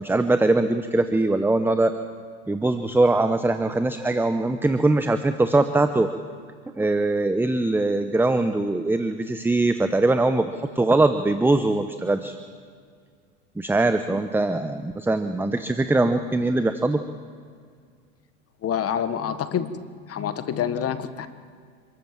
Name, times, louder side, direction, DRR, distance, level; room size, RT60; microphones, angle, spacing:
voice 1, 0.0-1.9 2.5-6.1 6.8-12.4 13.6-17.0, right 2 dB, 5° right, 9 dB, 0.8 m, -22 dB
voice 2, 18.6-19.8 20.1-21.3, left 8 dB, 35° left, 11 dB, 1.6 m, -27 dB
26.5 x 13.5 x 7.6 m, 2.1 s
hypercardioid pair, 95°, 41 cm